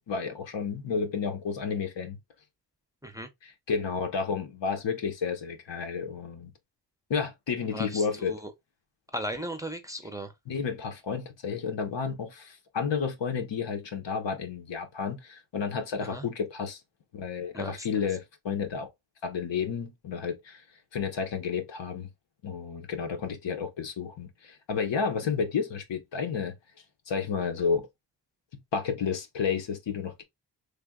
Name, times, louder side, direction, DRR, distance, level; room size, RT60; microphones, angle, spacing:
voice 1, 0.1-2.2 3.4-6.5 7.1-8.4 10.5-16.8 17.1-18.9 19.2-20.6 20.9-22.1 22.4-26.5 27.1-27.9 28.5-30.2, left 6 dB, 85° left, 0.9 m, -31 dB
voice 2, 7.7-8.5 9.1-10.3 16.0-16.2 17.5-17.8, right 1 dB, 10° right, 0.4 m, -36 dB
3.4 x 2.2 x 3.5 m
wide cardioid pair, 135°, 42 cm